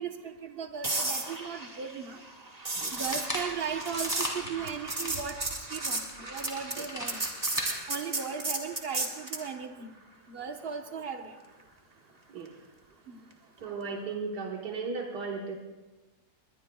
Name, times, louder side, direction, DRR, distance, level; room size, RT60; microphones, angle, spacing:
voice 1, 0.0-2.2 2.9-7.2 7.9-9.9 10.3-11.3 13.1-13.2, right 6 dB, 40° right, 5 dB, 1.2 m, -37 dB
sound 1, 0.8-9.5 13.7-13.9, right 2 dB, 25° right, 1.4 m, -34 dB
sound 2, 2.7-5.2 5.6-5.7 6.0-7.7, equal, 10° left, 3.4 m, -38 dB
voice 2, 2.8-3.2 6.8-6.9 12.3-12.6 13.6-15.6, right 4 dB, 85° right, 1 dB, 1.9 m, -36 dB
21.5 x 20.5 x 2.3 m, 1.2 s
omnidirectional pair, 1.7 m